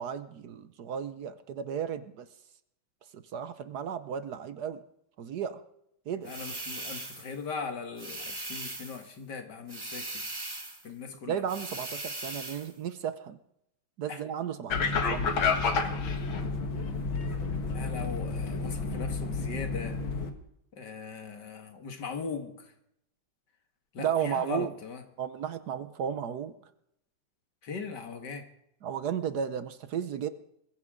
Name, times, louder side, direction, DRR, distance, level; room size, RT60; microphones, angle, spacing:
voice 1, 0.0-2.3 3.1-4.8 5.2-5.6 6.1-6.3 11.3-13.4 14.0-15.3 24.0-24.7 25.2-26.5 28.8-30.3, right 8 dB, 65° right, 1.3 m, -34 dB
sound 1, 6.2-7.4 8.0-9.1 9.7-10.9 11.5-12.7, right 2 dB, 15° right, 1.2 m, -39 dB
voice 2, 6.3-10.2 10.8-11.4 14.1-14.2 17.7-20.0 20.8-22.5 23.9-25.0 27.6-28.4, left 5 dB, 60° left, 2.4 m, -39 dB
sound 2, 14.7-20.3, left 4 dB, 90° left, 2.3 m, -30 dB
21.5 x 15.0 x 3.8 m
omnidirectional pair, 2.1 m